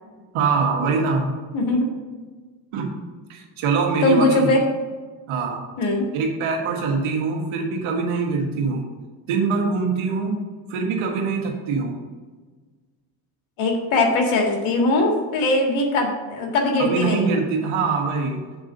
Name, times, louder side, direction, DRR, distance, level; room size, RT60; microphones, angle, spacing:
voice 1, 0.3-1.4 2.7-2.9 3.3-4.5 5.3-5.6 6.1-8.8 9.3-10.4 10.7-11.9 16.8-18.5, right 4 dB, 85° right, 1 dB, 1.7 m, -23 dB
voice 2, 1.5-1.9 4.0-4.6 5.8-6.1 13.6-17.4, left 2 dB, 80° left, 1 dB, 1.8 m, -20 dB
8.0 x 3.8 x 6.6 m, 1.4 s
supercardioid pair, 75°, 48 cm